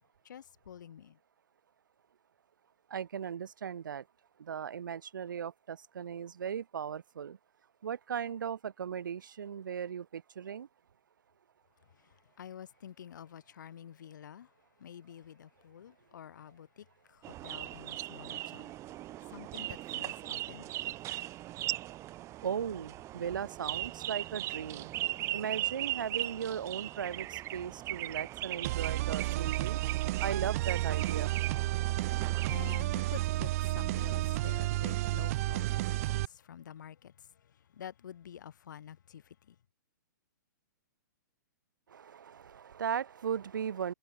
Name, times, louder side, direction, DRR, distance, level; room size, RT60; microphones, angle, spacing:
voice 1, 0.2-1.2 11.8-21.0 31.7-39.6, left 9 dB, 65° left, 7.0 m, -49 dB
voice 2, 2.9-4.0 4.4-7.4 7.8-10.7 22.4-24.9 25.3-29.8 30.2-31.4 41.9-43.9, right 8 dB, 75° right, 2.2 m, -37 dB
sound 1, 17.2-32.8, right 15 dB, 25° right, 5.4 m, -39 dB
sound 2, 28.6-36.2, right 17 dB, 45° right, 1.9 m, -31 dB
hypercardioid pair, 130°, 11 cm